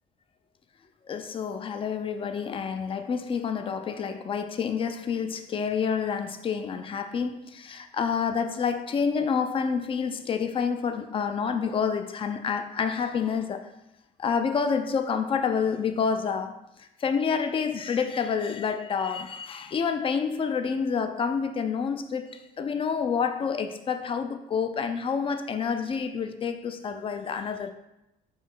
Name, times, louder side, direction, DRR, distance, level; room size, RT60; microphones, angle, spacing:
voice 1, 1.1-13.7 14.2-27.7, left 6 dB, 30° left, 0.4 m, -28 dB
5.1 x 2.1 x 3.9 m
cardioid pair, 110°, 17 cm